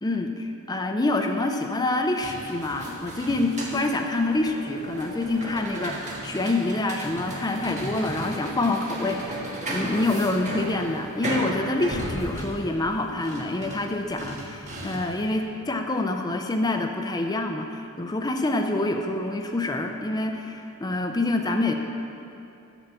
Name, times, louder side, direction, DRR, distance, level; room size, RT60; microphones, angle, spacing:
voice 1, 0.0-9.3 9.7-21.7, left 2 dB, 20° left, 4 dB, 0.5 m, -26 dB
sound 1, 2.0-15.3, right 1 dB, 35° right, 1.5 m, -35 dB
8.9 x 7.2 x 6.7 m, 2.7 s
head